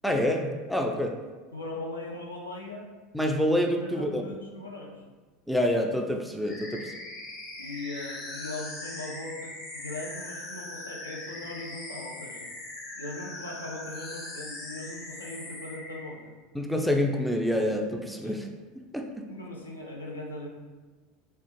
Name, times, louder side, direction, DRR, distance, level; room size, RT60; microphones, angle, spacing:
voice 1, 0.0-1.2 3.1-4.2 5.5-6.9 16.5-18.5 18.9-19.1, left 1 dB, ahead, 2 dB, 0.3 m, -27 dB
voice 2, 1.5-2.9 3.8-5.0 6.7-6.8 7.6-12.5 12.9-16.3 18.2-18.4 19.3-20.5, left 2 dB, 80° left, -1 dB, 0.5 m, -39 dB
sound 1, 6.4-16.1, left 2 dB, 40° left, 0.9 m, -40 dB
3.3 x 2.4 x 2.9 m, 1.4 s
figure-of-eight pair, 75°, 0 cm